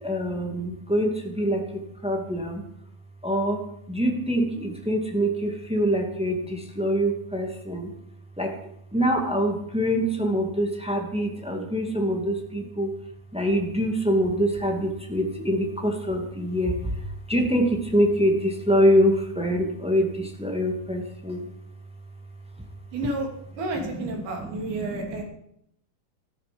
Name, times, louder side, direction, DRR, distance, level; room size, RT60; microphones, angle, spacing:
voice 1, 0.0-1.7 2.0-2.6 3.2-3.6 3.9-7.9 8.4-8.6 8.9-12.9 13.3-16.9 17.3-21.5 24.0-24.1 24.4-24.5 24.8-25.2, equal, 5° right, 2 dB, 0.6 m, -24 dB
voice 2, 22.9-23.3 23.6-25.2, right 2 dB, 75° right, 1 dB, 4.8 m, -31 dB
14.5 x 13.5 x 5.3 m, 0.74 s
omnidirectional pair, 4.4 m